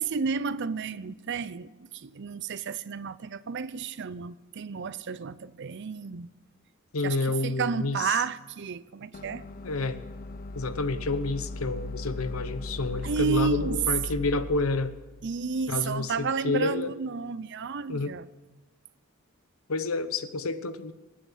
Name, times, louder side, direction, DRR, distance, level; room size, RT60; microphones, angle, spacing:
voice 1, 0.0-6.3 7.0-9.4 13.0-13.8 14.2-14.3 15.2-18.3, right 5 dB, 55° right, 0.5 m, -31 dB
voice 2, 6.9-8.1 9.6-10.0 10.5-15.0 15.7-16.9 17.9-18.1 19.7-20.9, left 3 dB, 80° left, 1.0 m, -29 dB
sound 1, 9.1-16.2, left 2 dB, 45° left, 0.6 m, -38 dB
20.0 x 8.7 x 7.4 m
head